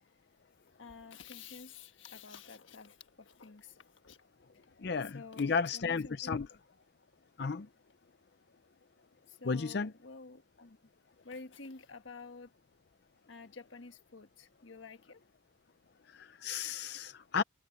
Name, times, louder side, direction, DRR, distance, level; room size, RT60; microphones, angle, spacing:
voice 1, 0.8-4.2 5.1-6.5 9.3-10.8 11.2-12.5 13.3-15.2, left 4 dB, 75° left, 1.5 m, -50 dB
voice 2, 4.8-6.5 7.4-7.7 9.5-9.9 16.1-17.4, left 5 dB, 55° left, 0.5 m, -33 dB
head